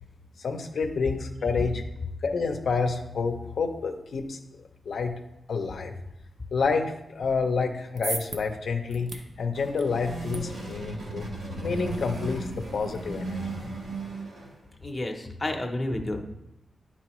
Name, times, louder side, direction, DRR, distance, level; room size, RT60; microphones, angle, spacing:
voice 1, 0.4-1.8 2.2-5.1 5.5-6.0 6.5-11.3 11.6-13.6, left 4 dB, 65° left, 4 dB, 0.5 m, -29 dB
sound 1, 7.6-14.0, right 3 dB, 65° right, 0.6 m, -42 dB
sound 2, 9.4-14.7, right 2 dB, 90° right, 1.5 m, -36 dB
voice 2, 14.8-16.2, left 1 dB, 15° left, 1 dB, 0.7 m, -30 dB
10.5 x 4.2 x 3.0 m, 0.87 s
wide cardioid pair, 175°, 0 cm